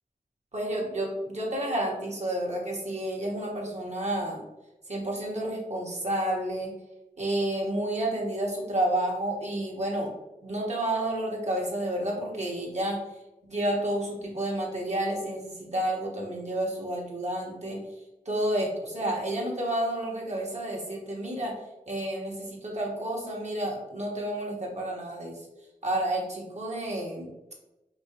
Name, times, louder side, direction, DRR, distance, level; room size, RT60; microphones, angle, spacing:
voice 1, 0.5-4.4 4.9-6.7 7.2-10.1 10.4-13.0 13.4-17.8 18.2-21.6 21.9-25.4 25.8-27.3, right 1 dB, 50° right, -2 dB, 1.4 m, -30 dB
5.2 x 2.9 x 2.9 m, 0.99 s
wide cardioid pair, 55°, 15 cm